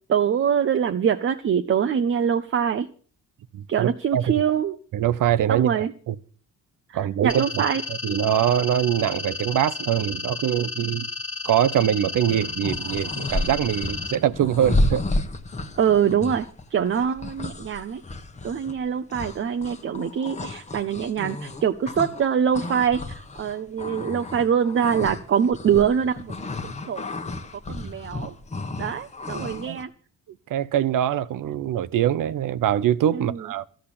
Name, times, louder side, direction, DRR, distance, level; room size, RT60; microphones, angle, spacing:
voice 1, 0.1-2.9 3.7-4.8 5.5-5.9 6.9-7.8 15.8-16.5 16.7-18.0 18.4-26.3 26.6-27.0 27.7-28.3 28.8-29.9 33.1-33.4, right 8 dB, 40° right, 0.7 m, -24 dB
voice 2, 3.5-4.3 4.9-6.2 6.9-11.1 11.4-15.0 29.7-29.8 30.5-33.7, right 11 dB, 75° right, 0.9 m, -23 dB
sound 1, 7.3-14.1, left 4 dB, 40° left, 1.5 m, -33 dB
sound 2, 12.3-22.3 22.5-29.8, left 2 dB, 20° left, 1.1 m, -31 dB
14.0 x 7.8 x 8.6 m
wide cardioid pair, 165°, 32 cm